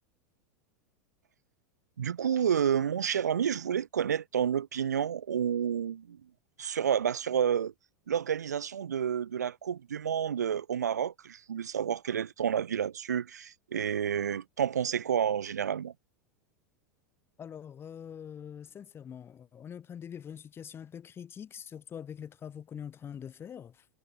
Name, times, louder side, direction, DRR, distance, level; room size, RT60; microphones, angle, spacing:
voice 1, 2.0-6.2 6.6-7.7 8.1-15.9, right 8 dB, 90° right, 0.4 m, -30 dB
voice 2, 17.4-23.9, left 8 dB, 25° left, 1.0 m, -44 dB
hypercardioid pair, 95°, 9 cm